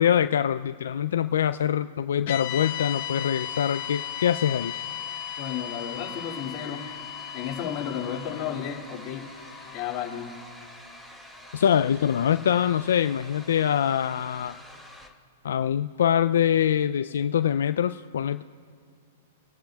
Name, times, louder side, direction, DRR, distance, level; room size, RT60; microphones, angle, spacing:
voice 1, 0.0-4.7 11.5-14.6 15.4-18.4, left 9 dB, 80° left, 10 dB, 0.3 m, -24 dB
sound 1, 2.3-10.6, left 12 dB, 60° left, 0.9 m, -37 dB
sound 2, 2.5-15.1, left 1 dB, 5° right, 1.3 m, -47 dB
voice 2, 5.4-6.8 7.3-9.2 9.7-10.3, left 9 dB, 40° left, -1 dB, 2.3 m, -33 dB
24.5 x 10.0 x 2.3 m, 2.3 s
hypercardioid pair, 130°, 0 cm